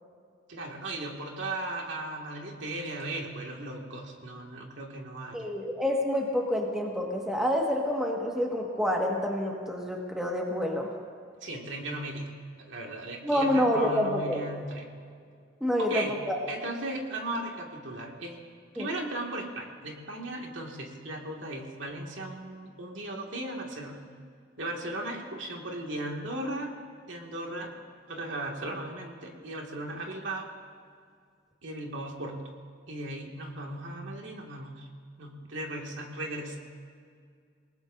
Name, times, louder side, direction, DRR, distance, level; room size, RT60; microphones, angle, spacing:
voice 1, 0.5-5.5 11.4-12.3 12.7-14.8 15.9-16.2 16.5-18.4 18.7-24.0 24.6-26.7 27.1-27.7 28.1-30.5 31.6-32.4 32.9-34.9 35.2-36.6, right 1 dB, 65° right, 0 dB, 2.1 m, -37 dB
voice 2, 5.3-10.9 13.2-14.4 15.6-16.4 18.8-18.9, equal, 5° right, -2 dB, 1.7 m, -28 dB
27.5 x 18.5 x 2.7 m, 2.2 s
head